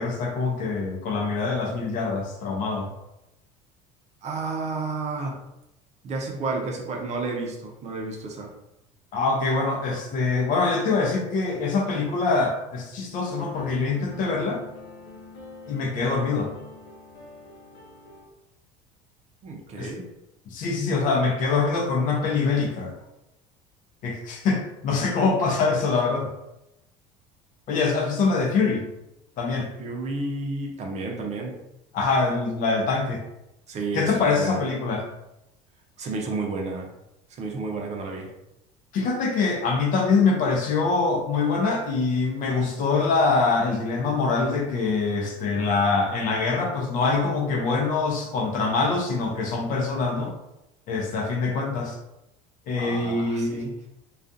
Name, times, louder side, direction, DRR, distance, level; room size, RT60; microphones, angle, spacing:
voice 1, 0.0-2.9 9.1-14.6 15.7-16.5 19.8-19.9 20.5-23.0 24.0-26.3 27.7-28.8 29.4-29.7 31.9-33.2 33.9-35.1 38.9-50.4 50.9-52.0 52.7-53.7, left 4 dB, 55° left, 2 dB, 0.6 m, -24 dB
voice 2, 4.2-5.4 6.0-8.5 19.4-20.1 29.8-31.5 33.7-34.6 36.0-36.9 37.3-38.3 52.8-53.7, right 3 dB, 45° right, 1 dB, 0.6 m, -31 dB
sound 1, 13.2-18.2, left 3 dB, 85° left, 0.7 m, -43 dB
2.4 x 2.3 x 2.6 m, 0.88 s
supercardioid pair, 95°, 16 cm